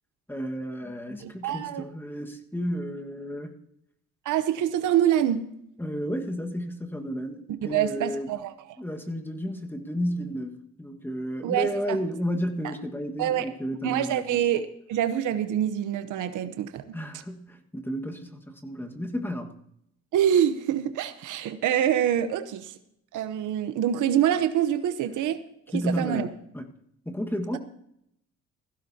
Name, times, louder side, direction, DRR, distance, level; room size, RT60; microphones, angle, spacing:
voice 1, 0.3-3.6 5.8-8.3 8.8-14.4 16.9-19.5 25.7-26.7 27.0-27.6, equal, 5° left, 4 dB, 1.6 m, -32 dB
voice 2, 1.2-1.8 4.2-5.5 7.6-8.5 11.4-12.0 13.2-13.4 13.8-17.0 20.1-22.7 23.1-25.4 25.7-26.3, right 10 dB, 85° right, 11 dB, 0.9 m, -25 dB
17.0 x 15.5 x 2.9 m, 0.75 s
cardioid pair, 90°, 30 cm